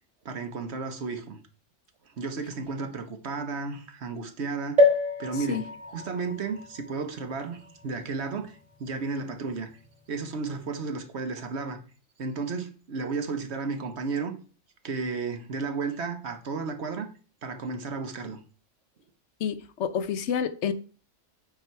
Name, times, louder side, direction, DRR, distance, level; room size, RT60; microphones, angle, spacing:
voice 1, 0.2-1.4 2.2-4.8 5.2-9.7 10.1-11.8 12.2-14.4 14.8-17.1 17.4-18.4, right 4 dB, 60° right, 1.2 m, -33 dB
sound 1, 4.8-8.4 9.0-9.1 9.3-9.4, left 2 dB, 5° right, 2.1 m, -27 dB
voice 2, 19.4-20.7, left 7 dB, 70° left, 0.9 m, -28 dB
8.4 x 4.6 x 4.5 m
omnidirectional pair, 1.3 m